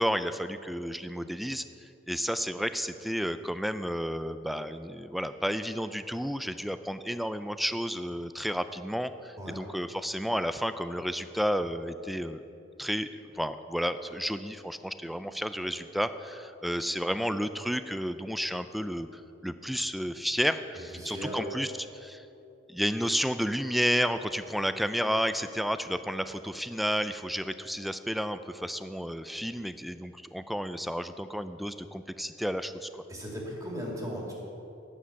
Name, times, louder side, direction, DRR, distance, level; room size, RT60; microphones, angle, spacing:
voice 1, 0.0-1.6 2.1-12.4 12.8-22.3 22.7-33.0, equal, ahead, 11 dB, 0.3 m, -31 dB
voice 2, 20.9-21.4 33.1-34.3, equal, 20° right, -3 dB, 2.2 m, -37 dB
9.9 x 8.3 x 5.8 m, 2.8 s
head